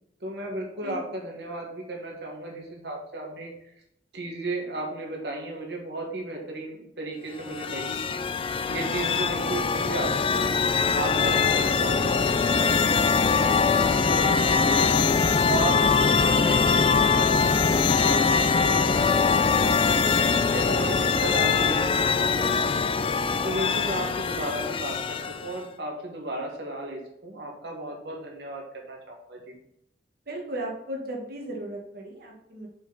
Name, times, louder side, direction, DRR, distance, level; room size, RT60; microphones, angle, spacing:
voice 1, 0.2-3.5 4.1-8.4 8.7-10.1 10.3-10.6 10.9-15.9 16.2-19.3 19.6-23.0 23.4-28.6 28.9-29.5, right 2 dB, 70° right, 0 dB, 1.5 m, -35 dB
sound 1, 7.4-25.6, left 5 dB, 30° left, 0.3 m, -23 dB
voice 2, 30.3-32.7, right 1 dB, 55° right, -1 dB, 1.4 m, -35 dB
6.2 x 5.5 x 4.0 m, 0.78 s
head